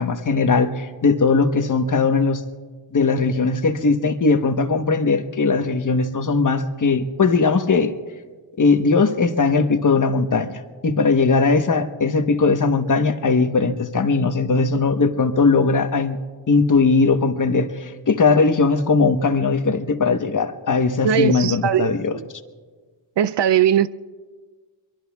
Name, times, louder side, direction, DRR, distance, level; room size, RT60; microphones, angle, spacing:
voice 1, 0.0-2.4 2.9-7.9 8.6-16.2 16.5-22.2, left 4 dB, 40° left, 1.1 m, -19 dB
voice 2, 21.0-22.3 23.2-23.9, right 8 dB, 60° right, 0.5 m, -19 dB
24.0 x 23.0 x 2.3 m
cardioid pair, 85°, 48 cm